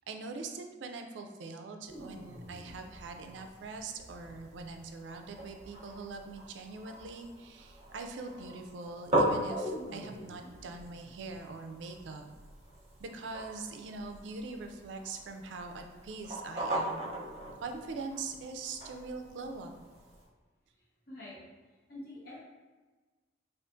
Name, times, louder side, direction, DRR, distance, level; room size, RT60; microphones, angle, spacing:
voice 1, 0.1-12.3 13.0-17.1 17.6-19.7, right 3 dB, 80° right, 5 dB, 0.3 m, -42 dB
sound 1, 1.9-20.2, right 1 dB, 35° right, 0.8 m, -39 dB
voice 2, 21.1-21.4 21.9-22.4, left 1 dB, 55° left, -6 dB, 1.0 m, -45 dB
3.6 x 2.4 x 2.5 m, 1.3 s
head